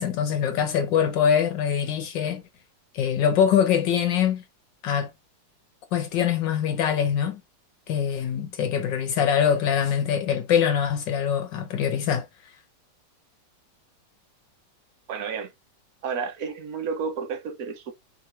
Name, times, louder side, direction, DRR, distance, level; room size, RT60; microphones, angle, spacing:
voice 1, 0.0-2.4 2.9-4.4 4.8-5.1 5.9-7.4 7.9-12.5, left 8 dB, 80° left, 1.5 m, -23 dB
voice 2, 15.1-15.5 16.0-17.9, right 6 dB, 55° right, 1.3 m, -31 dB
4.8 x 3.1 x 2.6 m
omnidirectional pair, 2.0 m